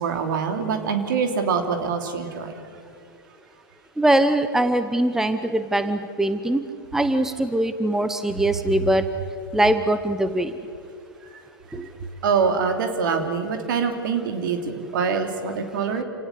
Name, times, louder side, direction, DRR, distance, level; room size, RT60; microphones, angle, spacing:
voice 1, 0.0-2.5 11.3-11.8 12.2-16.0, right 5 dB, 60° right, 6 dB, 3.1 m, -25 dB
voice 2, 4.0-6.6 6.9-9.0 9.5-10.5 11.7-11.9, right 1 dB, 5° right, 10 dB, 1.0 m, -22 dB
28.0 x 17.5 x 8.6 m, 2.4 s
figure-of-eight pair, 100°, 12 cm